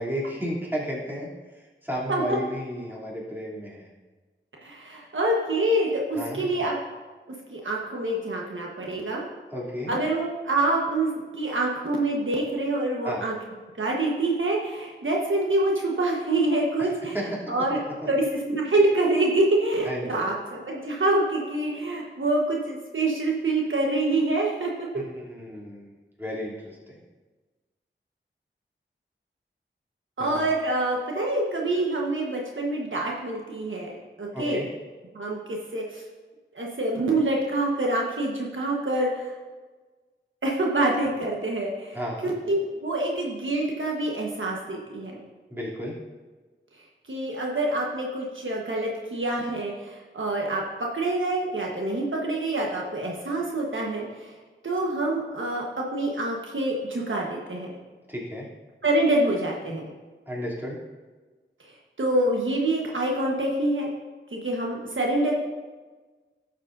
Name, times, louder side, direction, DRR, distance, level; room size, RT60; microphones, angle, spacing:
voice 1, 0.0-3.9 6.1-6.6 9.5-9.9 13.0-13.2 16.8-17.5 18.0-18.1 19.9-20.2 24.9-25.9 26.2-27.0 30.2-30.5 34.3-34.6 41.9-42.3 45.5-45.9 58.1-58.5 60.3-60.8, equal, 10° right, -5 dB, 2.9 m, -33 dB
voice 2, 4.6-6.7 7.5-9.2 9.9-13.3 13.8-17.2 17.5-17.8 18.0-20.3 20.7-24.9 30.2-33.9 34.2-34.6 35.1-36.0 36.5-39.3 40.4-42.0 42.2-45.1 47.1-54.3 54.6-57.7 58.8-59.9 62.0-63.9 64.3-65.3, right 2 dB, 70° right, -2 dB, 1.2 m, -26 dB
12.5 x 7.3 x 2.6 m, 1.3 s
wide cardioid pair, 40°, 21 cm